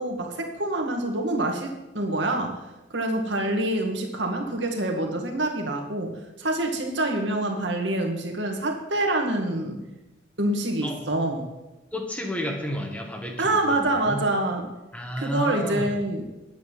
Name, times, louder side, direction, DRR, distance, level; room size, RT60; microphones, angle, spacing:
voice 1, 0.0-2.6 2.9-9.8 10.4-11.4 13.4-14.7 15.2-16.2, right 1 dB, 70° right, 3 dB, 2.2 m, -26 dB
voice 2, 11.9-14.2 14.9-16.0, equal, 5° left, 2 dB, 1.7 m, -31 dB
11.0 x 8.7 x 7.7 m, 1.0 s
head